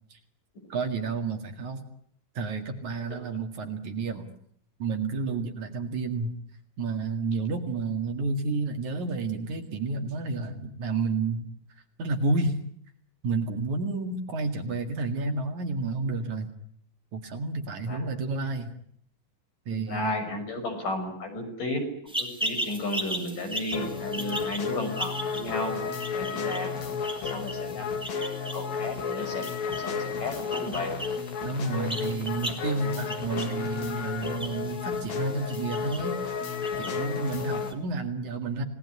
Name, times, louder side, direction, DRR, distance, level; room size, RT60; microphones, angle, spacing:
voice 1, 0.7-1.8 2.3-4.3 4.8-6.3 6.8-11.5 12.0-12.6 13.2-16.5 17.1-18.7 19.7-20.2 31.4-36.2 36.8-38.6, right 3 dB, 55° right, 5 dB, 3.3 m, -30 dB
voice 2, 19.7-25.8 26.1-26.8 27.1-31.0 37.6-37.8, left 1 dB, 60° left, 4 dB, 8.0 m, -34 dB
sound 1, 22.1-37.7, right 1 dB, ahead, 3.5 m, -38 dB
sound 2, 23.7-37.7, left 6 dB, 80° left, 4.2 m, -33 dB
29.5 x 18.5 x 9.9 m, 0.68 s
omnidirectional pair, 4.2 m